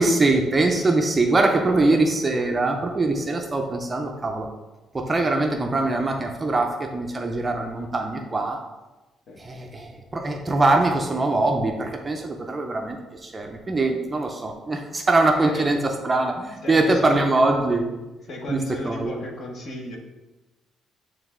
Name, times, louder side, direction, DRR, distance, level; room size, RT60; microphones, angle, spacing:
voice 1, 0.0-4.5 4.9-8.6 9.4-17.9 18.5-18.6 18.8-19.1, right 2 dB, 20° right, 3 dB, 0.5 m, -22 dB
voice 2, 0.6-1.0 1.3-2.0 9.3-9.4 15.5-15.8 16.6-17.3 18.3-20.0, left 1 dB, 45° left, 1 dB, 1.0 m, -35 dB
8.9 x 3.2 x 3.6 m, 1.1 s
cardioid pair, 170°, 0 cm